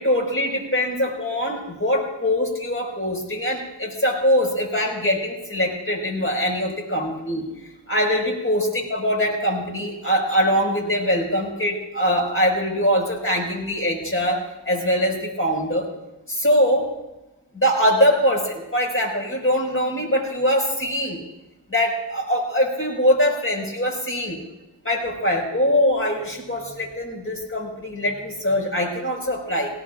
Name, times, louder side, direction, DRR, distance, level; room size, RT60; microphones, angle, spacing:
voice 1, 0.0-7.4 7.9-14.4 14.7-15.9 16.3-16.9 17.5-21.2 21.7-24.4 24.8-29.7, equal, 30° left, 1 dB, 5.5 m, -22 dB
18.5 x 18.5 x 2.5 m, 0.97 s
cardioid pair, 55°, 45 cm